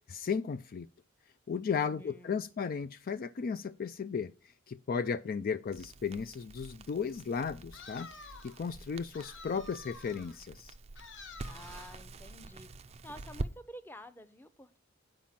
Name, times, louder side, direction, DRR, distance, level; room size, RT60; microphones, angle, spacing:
voice 1, 0.1-0.9 1.5-4.3 4.7-8.1 8.4-10.7, left 6 dB, 45° left, 0.4 m, -35 dB
voice 2, 1.8-2.4 11.5-12.7 13.0-14.8, equal, 10° left, 0.7 m, -50 dB
Crackle, 5.7-13.5, right 2 dB, 30° right, 0.4 m, -46 dB
sound 1, 7.7-8.6 9.1-10.4 11.0-12.0, left 4 dB, 65° left, 1.4 m, -50 dB
8.9 x 5.1 x 5.6 m
head